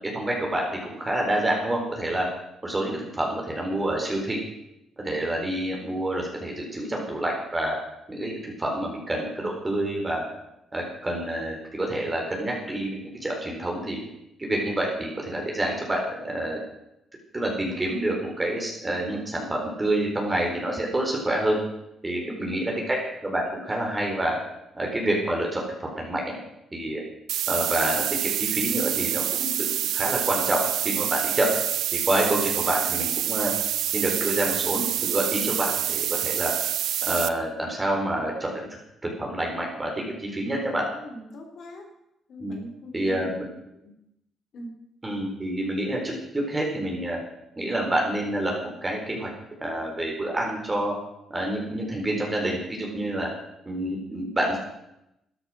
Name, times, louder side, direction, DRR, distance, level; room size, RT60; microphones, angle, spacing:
voice 1, 0.1-2.3 2.6-4.4 5.0-7.8 8.1-10.2 10.7-14.0 14.4-16.6 17.3-21.6 22.0-23.0 23.2-24.4 24.7-26.2 26.7-27.0 27.5-29.7 29.9-30.6 30.8-31.5 31.9-33.5 33.9-36.5 37.1-38.6 39.0-40.8 42.4-42.6 42.9-43.4 45.0-47.2 47.6-48.5 48.8-49.3 49.6-50.9 51.3-53.3 53.7-54.6, right 1 dB, 20° right, -1 dB, 4.1 m, -27 dB
voice 2, 22.1-22.6 40.9-41.9 42.3-43.4 43.8-44.0 44.5-44.7, left 1 dB, 60° left, 3 dB, 3.6 m, -41 dB
sound 1, 27.3-37.3, right 11 dB, 80° right, 0.6 m, -27 dB
13.0 x 10.5 x 6.2 m, 0.86 s
cardioid pair, 90°, 0 cm